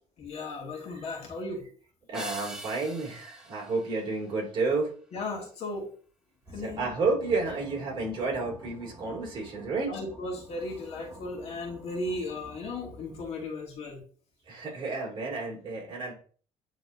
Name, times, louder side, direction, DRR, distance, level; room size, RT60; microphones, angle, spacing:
voice 1, 0.2-1.6 5.1-5.9 6.5-7.0 9.9-14.0, left 2 dB, 50° left, 0 dB, 2.2 m, -36 dB
sound 1, 2.1-4.8, right 1 dB, 5° right, 1.1 m, -43 dB
voice 2, 2.1-4.9 6.6-9.9 14.5-16.1, right 3 dB, 40° right, -2 dB, 2.9 m, -31 dB
sound 2, 6.4-13.7, right 1 dB, 20° right, 2.4 m, -50 dB
9.6 x 3.9 x 2.8 m, 0.42 s
cardioid pair, 145°, 13 cm